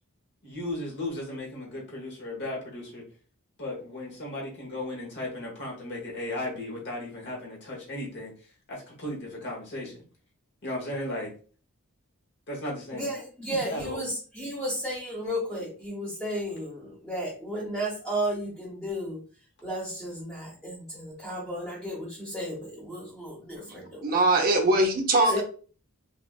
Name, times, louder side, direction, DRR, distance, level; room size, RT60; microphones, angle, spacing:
voice 1, 0.4-3.0 3.6-8.3 8.7-10.0 10.6-11.3 12.5-13.1 13.5-14.0 25.1-25.4, left 1 dB, 55° left, -2 dB, 1.0 m, -35 dB
voice 2, 12.9-19.2 19.6-24.2 25.3-25.4, equal, ahead, -8 dB, 1.0 m, -33 dB
voice 3, 24.0-25.4, right 2 dB, 40° right, 2 dB, 0.7 m, -21 dB
3.5 x 2.4 x 2.3 m, 0.38 s
head